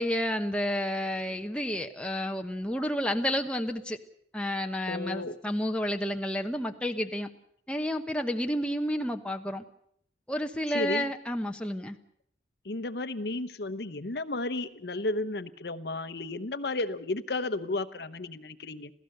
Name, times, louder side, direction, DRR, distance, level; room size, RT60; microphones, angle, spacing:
voice 1, 0.0-4.0 4.3-7.3 7.7-9.6 10.3-12.0, equal, 5° left, 4 dB, 1.0 m, -30 dB
voice 2, 4.9-5.4 10.7-11.1 12.6-18.9, left 2 dB, 65° left, 13 dB, 0.9 m, -33 dB
27.0 x 16.0 x 6.7 m, 0.67 s
head